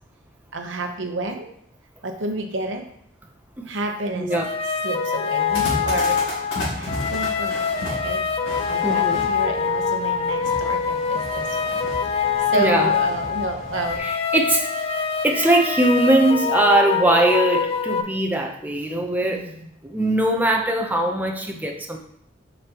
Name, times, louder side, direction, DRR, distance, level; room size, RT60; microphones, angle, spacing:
voice 1, 0.5-1.5 2.0-2.9 3.7-4.3 4.6-6.2 6.8-8.2 8.7-11.8 12.1-14.1 19.2-19.7, right 2 dB, 80° right, 4 dB, 0.9 m, -30 dB
voice 2, 4.1-4.5 8.8-9.2 12.5-12.9 14.0-14.9 15.2-19.5 19.8-22.0, right 1 dB, 10° right, 1 dB, 0.7 m, -21 dB
sound 1, 4.3-18.0, left 6 dB, 30° left, 0.5 m, -24 dB
sound 2, 5.5-14.0, equal, 80° left, 2.8 m, -34 dB
7.6 x 5.2 x 2.9 m, 0.72 s
head